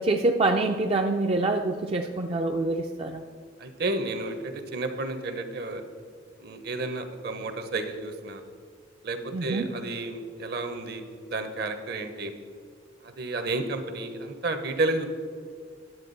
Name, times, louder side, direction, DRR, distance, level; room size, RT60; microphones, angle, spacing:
voice 1, 0.0-3.2 9.3-9.7, right 2 dB, 30° right, 3 dB, 0.4 m, -26 dB
voice 2, 3.6-5.8 6.4-8.4 9.0-12.3 13.0-15.0, right 2 dB, 60° right, 7 dB, 0.9 m, -31 dB
10.5 x 7.4 x 4.0 m, 2.1 s
head